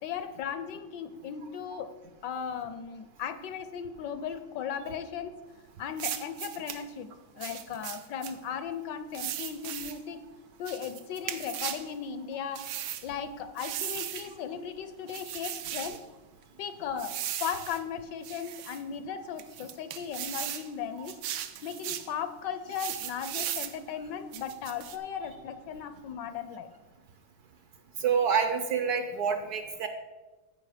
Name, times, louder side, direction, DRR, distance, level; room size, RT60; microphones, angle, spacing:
voice 1, 0.0-1.9 2.2-5.4 5.8-10.2 10.6-12.7 13.0-16.0 16.6-21.2 21.6-26.7, left 7 dB, 75° left, 12 dB, 1.1 m, -37 dB
sound 1, 6.0-6.8 7.4-8.3 9.1-10.0 10.7-11.9 12.6-13.1 13.6-14.3 15.1-16.0 17.0-17.8 18.2-18.8 19.4-20.7 21.1-22.1 22.7-23.8 24.3-25.0, right 11 dB, 85° right, 1.5 m, -37 dB
voice 2, 28.0-29.9, right 6 dB, 65° right, 7 dB, 1.0 m, -27 dB
14.5 x 5.0 x 4.9 m, 1.2 s
omnidirectional pair, 2.1 m